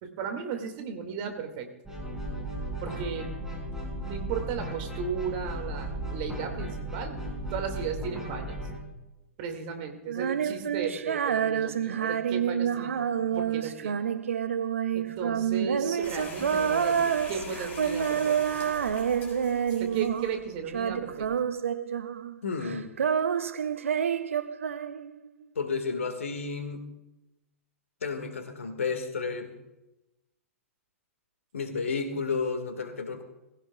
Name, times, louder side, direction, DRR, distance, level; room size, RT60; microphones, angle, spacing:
voice 1, 0.0-1.7 2.8-3.6 3.9-7.2 7.5-8.6 9.4-14.0 14.9-18.4 19.8-21.3, right 6 dB, 40° right, 5 dB, 2.1 m, -35 dB
sound 1, 1.8-8.8, right 1 dB, 5° right, 5.3 m, -35 dB
Female singing, 10.1-20.4 20.7-22.4 22.6-25.3, right 8 dB, 70° right, 0.6 m, -28 dB
sound 2, 16.0-21.3, left 2 dB, 25° left, 4.2 m, -44 dB
voice 2, 22.4-22.9 25.6-26.8 28.0-29.5 31.5-33.2, left 4 dB, 70° left, 8 dB, 1.7 m, -32 dB
20.0 x 16.5 x 2.3 m, 0.96 s
figure-of-eight pair, 110°, 7 cm